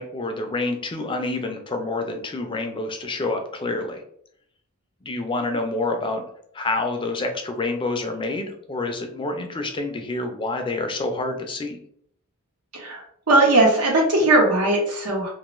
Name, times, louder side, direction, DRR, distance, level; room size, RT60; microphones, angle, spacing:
voice 1, 0.0-4.0 5.0-6.2 6.5-11.8, left 2 dB, 25° left, 5 dB, 0.3 m, -27 dB
voice 2, 12.7-15.3, right 2 dB, 85° right, -1 dB, 0.9 m, -19 dB
2.5 x 2.3 x 2.9 m, 0.67 s
head